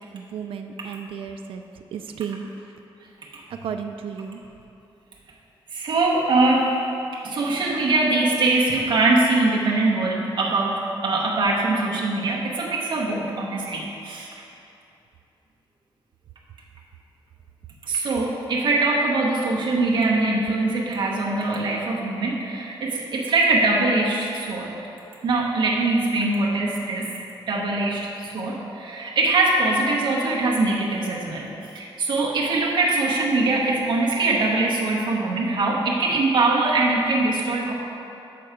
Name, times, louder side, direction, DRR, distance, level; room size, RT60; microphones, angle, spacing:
voice 1, 0.0-1.6 1.9-2.5 3.6-4.4, right 7 dB, 75° right, 5 dB, 0.4 m, -33 dB
voice 2, 5.7-6.8 7.2-14.3 17.9-24.7 25.2-27.1 27.5-28.1 28.3-31.5 31.7-37.7, right 2 dB, 60° right, -4 dB, 0.9 m, -22 dB
6.9 x 4.5 x 5.0 m, 2.7 s
wide cardioid pair, 175°, 9 cm